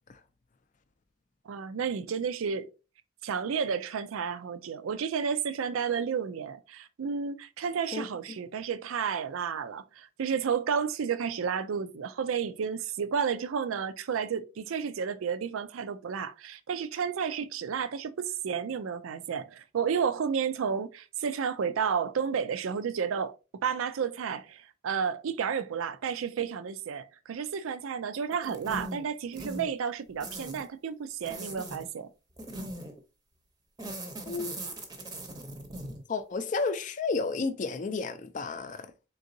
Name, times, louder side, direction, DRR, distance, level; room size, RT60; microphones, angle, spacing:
voice 1, 1.5-2.7 3.2-23.3 23.6-32.1, right 6 dB, 90° right, 0.4 m, -31 dB
sound 1, 28.3-29.0 29.3-29.7 30.2-30.7 31.2-31.8 32.4-33.0 33.8-36.0, right 1 dB, 20° right, 0.6 m, -39 dB
voice 2, 36.1-38.9, left 4 dB, 40° left, 0.4 m, -31 dB
3.9 x 3.6 x 2.6 m
head